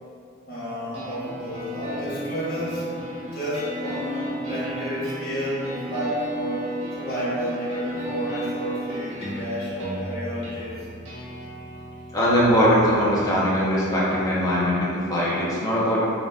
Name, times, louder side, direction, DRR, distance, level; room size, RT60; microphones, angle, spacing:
voice 1, 0.5-2.9 3.2-6.6 7.0-10.8, equal, 50° left, -9 dB, 1.2 m, -30 dB
sound 1, 0.9-14.9, right 1 dB, 70° right, 1.2 m, -35 dB
voice 2, 12.1-16.1, equal, 20° left, -8 dB, 0.7 m, -21 dB
3.8 x 3.7 x 2.4 m, 2.4 s
head